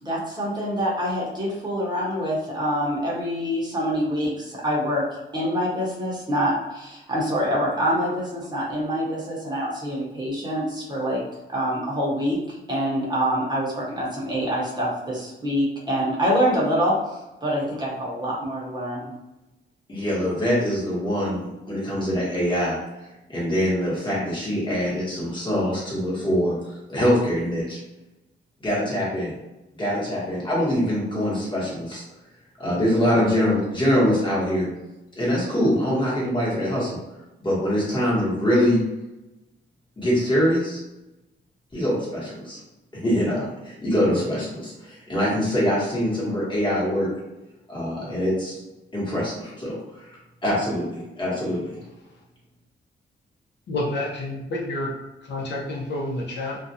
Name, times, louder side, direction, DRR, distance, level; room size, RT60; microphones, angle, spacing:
voice 1, 0.0-5.0 5.3-11.2 11.5-16.9 17.4-19.1, equal, 20° right, -5 dB, 0.8 m, -25 dB
voice 2, 19.9-22.8 23.3-26.5 26.9-27.8 28.6-29.3 29.8-32.0 32.6-34.7 35.2-37.0 37.4-38.8 40.0-40.8 41.7-42.6 42.9-47.1 47.7-48.6 48.9-50.1 50.4-50.9 51.2-51.8, equal, 25° left, -6 dB, 1.2 m, -23 dB
voice 3, 53.7-54.9 55.3-56.6, left 1 dB, 60° left, -2 dB, 0.7 m, -29 dB
2.4 x 2.2 x 2.7 m, 1.0 s
cardioid pair, 120°, 20 cm